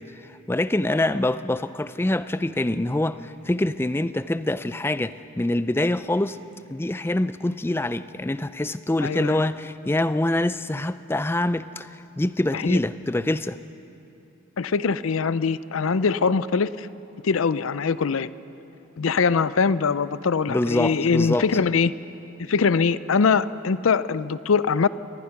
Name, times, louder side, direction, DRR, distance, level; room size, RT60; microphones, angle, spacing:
voice 1, 0.2-6.4 6.7-13.6 20.5-21.5, left 1 dB, 10° left, 13 dB, 0.3 m, -25 dB
voice 2, 9.0-9.4 12.5-12.8 14.6-16.9 17.2-18.3 19.0-21.9 22.4-24.9, left 5 dB, 75° left, 16 dB, 0.5 m, -22 dB
23.5 x 19.5 x 5.9 m, 2.9 s
head